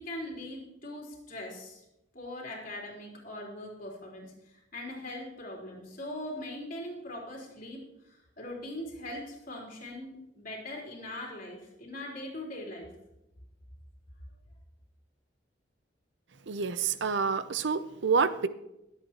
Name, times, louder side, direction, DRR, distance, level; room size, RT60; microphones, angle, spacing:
voice 1, 0.0-1.8 2.1-7.8 8.0-12.9, left 1 dB, 50° left, -3 dB, 3.7 m, -41 dB
voice 2, 16.5-18.5, right 5 dB, 70° right, 13 dB, 0.6 m, -28 dB
22.0 x 8.3 x 3.0 m, 0.90 s
head